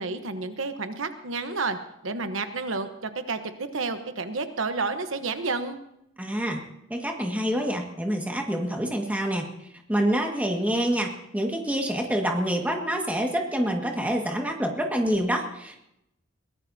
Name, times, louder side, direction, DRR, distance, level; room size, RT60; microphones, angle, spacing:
voice 1, 0.0-1.8 2.0-5.8, right 3 dB, 85° right, 8 dB, 1.1 m, -30 dB
voice 2, 6.2-6.6 6.9-9.5 9.9-15.8, equal, 10° right, 1 dB, 1.8 m, -27 dB
22.5 x 18.0 x 2.8 m, 0.81 s
head